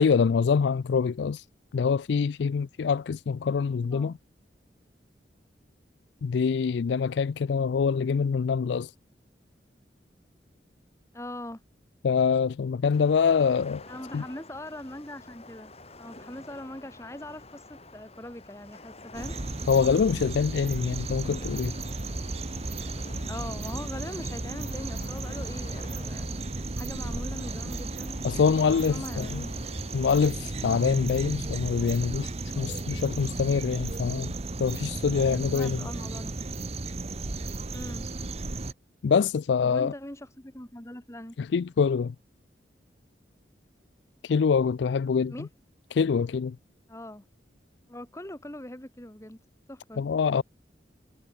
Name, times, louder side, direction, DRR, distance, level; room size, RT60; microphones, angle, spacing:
voice 1, 0.0-1.4 1.7-4.1 6.2-8.9 12.0-13.8 14.1-14.2 19.7-21.7 28.2-29.4 29.9-32.3 32.6-34.3 34.6-35.8 39.0-39.9 41.4-42.1 44.2-45.5 45.9-46.6 50.0-50.4, left 6 dB, 75° left, 0.4 m, -25 dB
voice 2, 3.8-4.2 11.1-11.6 13.9-15.7 16.0-19.4 23.3-26.3 26.8-28.5 28.9-29.6 35.3-36.4 37.7-38.1 39.6-41.4 45.3-45.5 46.9-47.2 47.9-49.4 49.7-50.0, left 1 dB, 15° left, 2.0 m, -41 dB
sound 1, 12.9-30.3, left 2 dB, 35° left, 7.5 m, -49 dB
sound 2, 19.1-38.7, right 2 dB, 35° right, 1.0 m, -34 dB
head